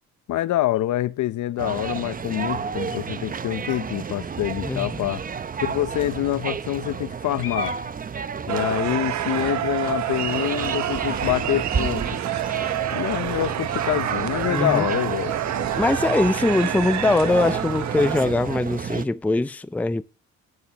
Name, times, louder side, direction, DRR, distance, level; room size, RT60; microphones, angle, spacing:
voice 1, 0.3-7.7 8.5-12.2 12.9-15.3, left 14 dB, 75° left, 0.8 m, -26 dB
sound 1, 1.6-19.1, right 6 dB, 30° right, 0.7 m, -31 dB
sound 2, 6.6-18.2, left 9 dB, 45° left, 2.3 m, -50 dB
sound 3, 8.5-18.2, right 11 dB, 65° right, 1.0 m, -28 dB
voice 2, 14.5-14.9 15.8-20.0, left 2 dB, 5° left, 0.5 m, -22 dB
12.5 x 11.0 x 3.0 m
cardioid pair, 90°, 30 cm